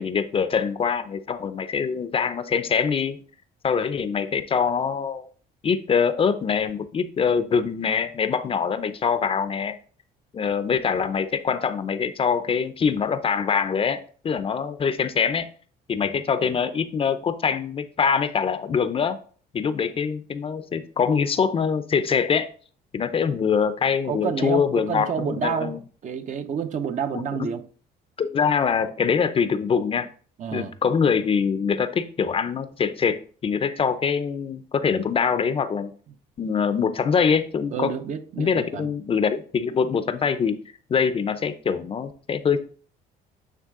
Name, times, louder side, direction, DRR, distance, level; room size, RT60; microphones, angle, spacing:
voice 1, 0.0-3.2 3.6-5.3 5.6-9.8 10.3-15.5 15.9-19.2 19.5-22.5 22.9-25.8 27.1-27.5 28.2-30.1 30.5-35.9 36.4-37.9 38.4-40.6 40.9-42.6, left 6 dB, 35° left, 0.6 m, -24 dB
voice 2, 24.1-25.7 26.0-27.7 30.4-30.7 37.7-38.9, right 7 dB, 45° right, 0.8 m, -29 dB
9.3 x 3.3 x 3.7 m
cardioid pair, 110°, 17 cm